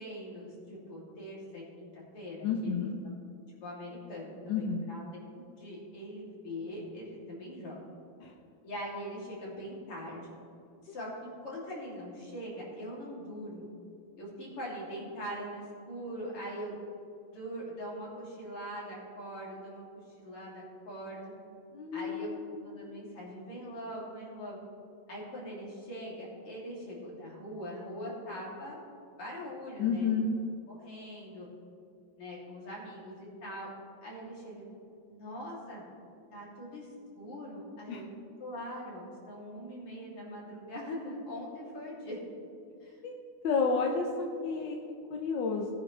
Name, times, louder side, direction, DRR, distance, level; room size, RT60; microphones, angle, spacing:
voice 1, 0.0-2.9 3.6-7.8 8.6-10.3 10.8-13.7 14.2-16.8 17.3-19.8 20.2-21.3 21.9-22.3 22.6-24.6 25.1-28.8 29.2-30.2 30.7-31.5 32.2-33.7 34.0-34.6 35.1-35.8 36.3-36.9 37.2-38.0 38.4-42.2 42.8-43.0, equal, 90° left, -6 dB, 4.0 m, -42 dB
voice 2, 2.4-3.0 4.5-4.8 8.2-8.3 21.7-22.6 22.8-22.9 29.8-30.3 37.9-38.0 43.0-43.2 43.4-44.1 44.4-44.8 45.1-45.7, left 5 dB, 65° left, 0 dB, 1.4 m, -30 dB
18.0 x 9.3 x 3.4 m, 2.5 s
omnidirectional pair, 2.4 m